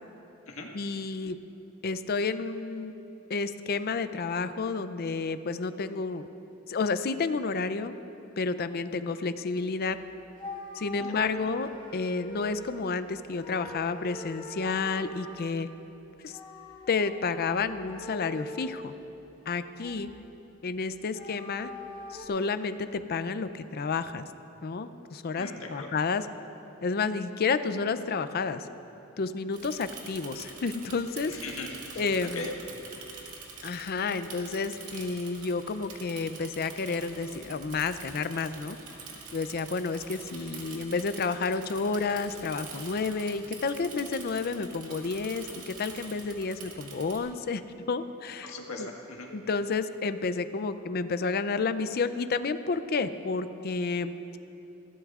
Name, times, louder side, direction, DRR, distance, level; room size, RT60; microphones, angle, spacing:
voice 1, 0.7-1.4 1.8-2.9 3.3-6.3 6.7-7.9 8.4-10.0 10.7-15.7 16.2-16.4 16.9-18.9 19.5-20.1 20.6-21.7 22.1-24.2 24.6-26.3 26.8-28.7 29.2-31.4 32.0-32.5 33.6-38.8 39.3-47.6 47.9-48.5 48.8-48.9 49.3-54.2, left 4 dB, 45° left, 12 dB, 0.4 m, -30 dB
sound 1, 9.9-10.0 10.4-12.9 13.4-15.5 16.2-18.8 19.3-20.2 20.9-22.2, left 1 dB, 20° left, 1.3 m, -43 dB
voice 2, 25.4-25.9 31.3-32.5 48.4-49.3, left 3 dB, 70° left, 0 dB, 1.7 m, -40 dB
Bicycle / Mechanisms, 29.5-47.2, right 4 dB, 85° right, 1.9 m, -45 dB
20.0 x 15.5 x 2.4 m, 2.9 s
head